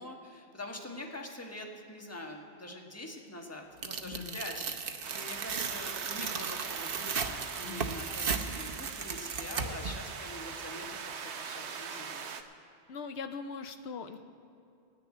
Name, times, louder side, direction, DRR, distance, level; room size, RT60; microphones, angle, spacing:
voice 1, 0.0-11.1 11.4-12.4, left 1 dB, 15° left, 1 dB, 1.3 m, -44 dB
Tearing, 3.8-9.9, right 6 dB, 60° right, 0.9 m, -36 dB
voice 2, 4.0-4.4 7.6-8.0 12.9-14.2, left 5 dB, 80° left, 8 dB, 1.0 m, -41 dB
sound 1, 5.0-12.4, right 6 dB, 85° right, 1.1 m, -41 dB
17.0 x 6.7 x 9.1 m, 2.5 s
omnidirectional pair, 1.1 m